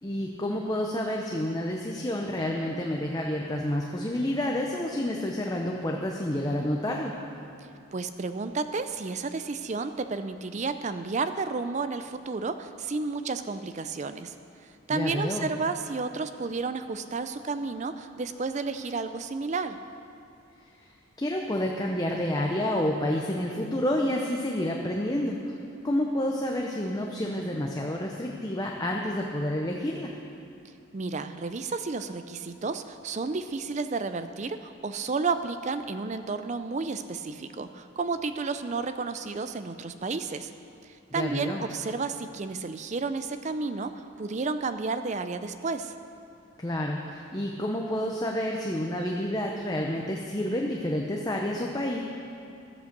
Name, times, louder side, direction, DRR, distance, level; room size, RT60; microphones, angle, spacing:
voice 1, 0.0-7.1 14.9-15.5 20.8-20.9 21.2-25.4 25.8-30.1 41.1-41.6 46.6-52.0, left 1 dB, 20° left, 0 dB, 0.7 m, -29 dB
voice 2, 7.9-14.3 14.6-19.8 30.9-40.5 40.9-45.9, right 4 dB, 35° right, 10 dB, 0.4 m, -32 dB
13.0 x 7.9 x 6.7 m, 2.6 s
head